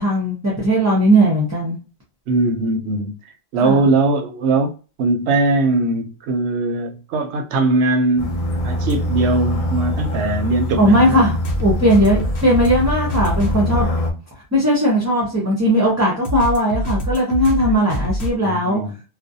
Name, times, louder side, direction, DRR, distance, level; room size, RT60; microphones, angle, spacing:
voice 1, 0.0-1.8 3.6-3.9 10.8-13.9 14.5-18.8, equal, 20° right, 0.5 m, -17 dB
voice 2, 2.3-3.1 3.5-4.7 5.0-11.4 18.4-18.9, right 2 dB, 85° right, 0.9 m, -20 dB
sound 1, 8.2-14.1, left 1 dB, 45° left, 0.5 m, -24 dB
sound 2, 8.9-9.0 11.4-13.8 16.2-18.3, equal, 80° left, 0.9 m, -24 dB
2.4 x 2.1 x 2.6 m
omnidirectional pair, 1.1 m